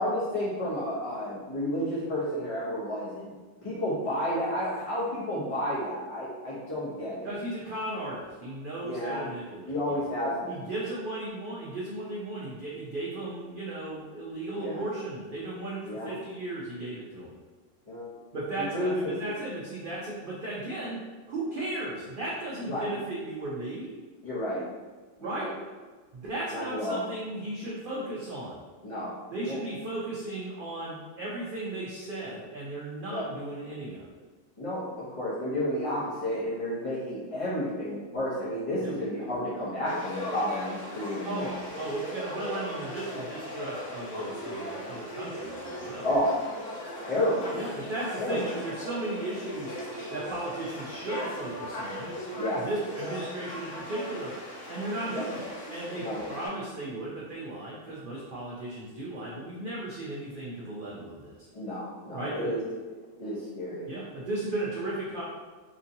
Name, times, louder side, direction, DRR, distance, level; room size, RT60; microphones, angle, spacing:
voice 1, 0.0-3.3 3.6-7.3 8.8-9.2 9.7-10.6 14.5-14.9 15.8-16.1 17.9-18.1 18.7-19.1 22.6-22.9 24.2-24.6 25.2-25.5 26.5-27.0 28.8-29.1 29.4-29.6 33.1-33.2 34.6-41.8 46.0-46.3 47.0-47.5 48.2-48.4 52.4-52.6 55.1-55.2 56.0-56.2 61.5-62.6 63.2-63.9, left 1 dB, 45° left, -9 dB, 0.4 m, -31 dB
voice 2, 7.2-9.7 10.5-17.3 18.3-21.0 21.3-23.9 25.2-25.5 26.1-28.5 29.3-34.1 38.8-38.9 41.2-46.1 47.5-49.8 50.1-52.1 52.5-54.3 54.7-61.5 62.1-62.5 63.9-65.2, right 2 dB, 80° right, -6 dB, 0.4 m, -36 dB
Conversation / Crowd, 39.9-56.5, left 1 dB, 65° left, 1.0 m, -38 dB
2.9 x 2.6 x 2.6 m, 1.4 s
omnidirectional pair, 1.5 m